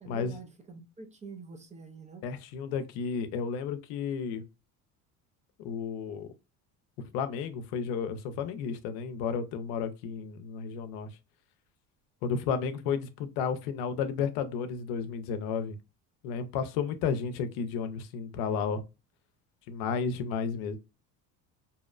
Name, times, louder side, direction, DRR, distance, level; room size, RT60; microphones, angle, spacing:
voice 1, 0.0-2.2, right 4 dB, 20° right, 0.4 m, -46 dB
voice 2, 2.2-4.4 5.6-6.3 7.0-11.2 12.2-15.8 16.2-18.8 19.7-20.8, left 6 dB, 85° left, 0.5 m, -32 dB
2.7 x 2.0 x 2.3 m
cardioid pair, 105°, 38 cm